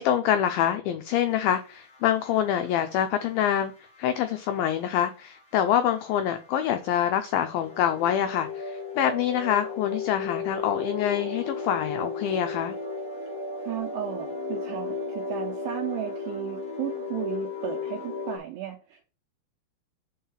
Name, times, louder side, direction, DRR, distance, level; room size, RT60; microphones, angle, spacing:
voice 1, 0.0-3.7 4.0-12.8, left 10 dB, 90° left, 2.0 m, -26 dB
sound 1, 1.1-18.4, left 4 dB, 40° left, 2.0 m, -35 dB
voice 2, 13.6-19.0, right 11 dB, 80° right, 2.0 m, -34 dB
5.5 x 4.7 x 5.6 m
omnidirectional pair, 4.8 m